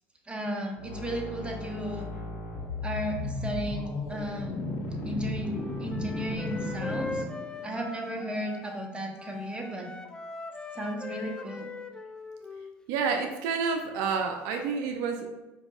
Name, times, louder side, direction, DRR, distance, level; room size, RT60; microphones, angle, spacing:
voice 1, 0.3-2.1 2.8-7.2 7.6-9.9 10.7-11.7, right 1 dB, 15° right, 1 dB, 0.7 m, -35 dB
sound 1, 0.8-7.7, left 2 dB, 70° left, 1.4 m, -35 dB
Wind instrument woodwind instrument, 5.4-8.9 9.2-12.7, left 2 dB, 10° left, 0.3 m, -40 dB
voice 2, 12.9-15.3, right 5 dB, 75° right, 5 dB, 0.3 m, -29 dB
5.0 x 2.6 x 2.3 m, 1.1 s
supercardioid pair, 80°, 6 cm